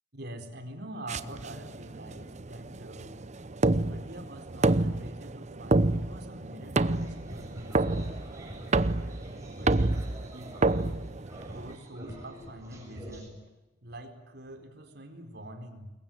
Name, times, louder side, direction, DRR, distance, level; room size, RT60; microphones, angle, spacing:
voice 1, 0.1-3.5 3.8-8.2 9.4-10.0 10.3-10.9 11.5-13.5 13.8-15.9, right 1 dB, 60° right, 6 dB, 4.3 m, -45 dB
sound 1, 1.1-11.8, right 2 dB, 40° right, 0.9 m, -29 dB
sound 2, 6.8-13.3, right 1 dB, 15° right, 7.2 m, -47 dB
27.0 x 22.5 x 9.1 m, 1.1 s
head